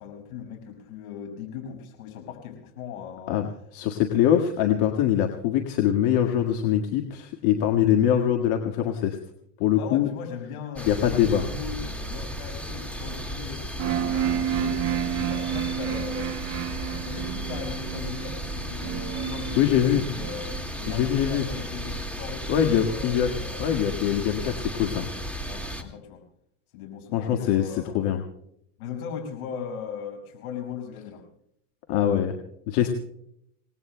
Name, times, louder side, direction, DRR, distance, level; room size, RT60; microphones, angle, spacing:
voice 1, 0.0-3.4 9.7-16.3 16.8-20.5 20.8-23.7 25.4-26.2 26.7-28.0 28.8-31.2, left 7 dB, 75° left, 3 dB, 5.8 m, -38 dB
voice 2, 3.7-9.2 9.6-10.1 10.9-11.4 19.6-20.0 20.9-21.5 22.5-23.3 23.6-25.1 27.1-27.6 27.9-28.2 31.9-32.3 32.7-32.9, left 10 dB, 55° left, 3 dB, 1.8 m, -23 dB
sound 1, 10.8-25.8, equal, 5° left, 2.0 m, -34 dB
sound 2, 13.8-21.6, right 10 dB, 35° right, 1.4 m, -31 dB
28.0 x 19.0 x 2.2 m, 0.74 s
hypercardioid pair, 105°, 43 cm